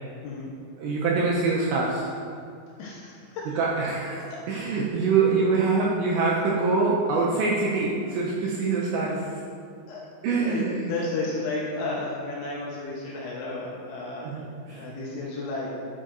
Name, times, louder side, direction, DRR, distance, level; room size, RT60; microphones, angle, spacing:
voice 1, 0.2-0.6 2.8-3.6 4.1-4.5 8.0-8.1 9.9-14.4 14.7-15.8, left 2 dB, 75° left, -4 dB, 2.8 m, -33 dB
voice 2, 0.8-2.1 3.6-9.4 10.2-10.9 14.2-15.1, right 4 dB, 85° right, -4 dB, 2.6 m, -25 dB
9.9 x 6.4 x 2.5 m, 2.3 s
omnidirectional pair, 5.9 m